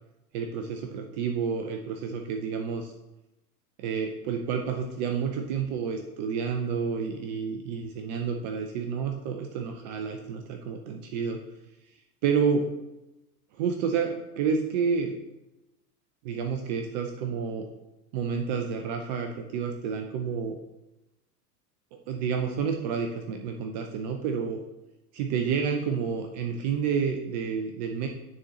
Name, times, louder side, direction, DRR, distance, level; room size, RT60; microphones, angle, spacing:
voice 1, 0.3-2.9 3.8-11.4 12.2-12.6 13.5-15.2 16.2-17.7 18.1-20.6 21.9-24.6 25.1-28.1, right 6 dB, 30° right, 4 dB, 0.4 m, -29 dB
9.4 x 3.7 x 2.9 m, 0.97 s
hypercardioid pair, 95°, 48 cm